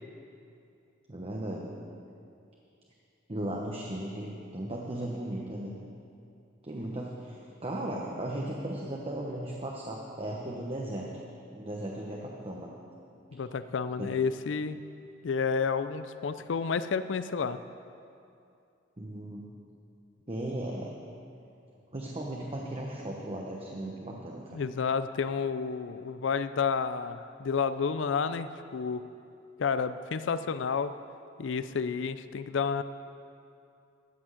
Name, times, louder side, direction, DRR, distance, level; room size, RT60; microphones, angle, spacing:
voice 1, 1.1-1.8 3.3-5.8 6.6-11.1 11.5-12.7 14.0-14.1 19.0-19.5 20.3-20.9 21.9-24.6, right 1 dB, 30° right, -1 dB, 1.0 m, -36 dB
voice 2, 13.3-14.8 15.2-17.6 24.5-29.0 29.6-31.0 31.4-32.8, left 5 dB, 75° left, 12 dB, 0.4 m, -30 dB
13.0 x 6.2 x 8.1 m, 2.5 s
head